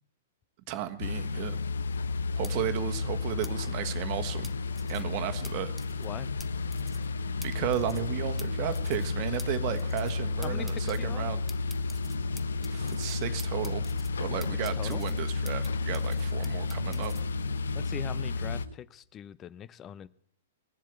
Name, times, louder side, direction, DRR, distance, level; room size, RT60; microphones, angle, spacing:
voice 1, 0.7-1.6 2.3-4.5 4.9-5.7 7.4-11.4 12.7-13.8 14.2-17.1, right 12 dB, 40° right, 8 dB, 1.4 m, -34 dB
sound 1, 1.0-18.7, left 4 dB, 75° left, 0.5 m, -32 dB
sound 2, 2.4-2.5 3.4-3.5 4.4-5.0 5.4-5.5 5.8-6.1 6.4-6.5 6.7-7.1 7.4-7.5 7.7-8.1 8.4-8.5 8.7-9.1 9.4-9.5 9.8-10.2 10.4-11.0 11.5-13.1 13.4-14.1 14.4-15.7 15.9-17.2, left 1 dB, 5° left, 0.9 m, -48 dB
sound 3, 3.3-18.8, right 5 dB, 75° right, 0.8 m, -46 dB
voice 2, 10.4-11.3 14.6-15.0 17.7-20.1, left 11 dB, 25° left, 17 dB, 0.7 m, -41 dB
20.5 x 7.5 x 8.3 m, 0.71 s
figure-of-eight pair, 110°, 0 cm